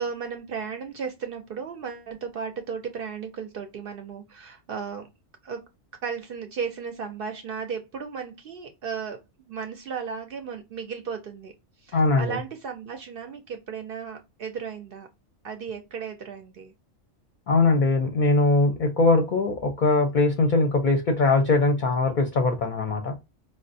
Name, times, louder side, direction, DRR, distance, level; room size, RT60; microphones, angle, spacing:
voice 1, 0.0-5.1 5.4-5.6 6.0-11.5 11.8-15.1 15.4-16.7, right 6 dB, 60° right, 6 dB, 0.6 m, -35 dB
voice 2, 11.9-12.4 17.5-23.1, left 3 dB, 55° left, 5 dB, 0.6 m, -21 dB
4.8 x 2.1 x 2.5 m, 0.24 s
omnidirectional pair, 1.3 m